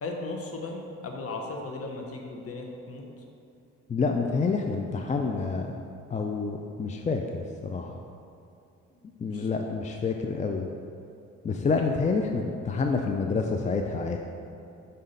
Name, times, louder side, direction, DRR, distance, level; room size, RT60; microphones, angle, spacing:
voice 1, 0.0-3.0 8.9-9.0 9.3-9.5 11.8-11.9, left 2 dB, 50° left, 1 dB, 1.1 m, -36 dB
voice 2, 3.9-5.8 6.1-8.0 9.2-10.7 11.4-14.2, left 4 dB, 25° left, 3 dB, 0.4 m, -28 dB
5.7 x 5.4 x 5.1 m, 2.6 s
cardioid pair, 90°, 30 cm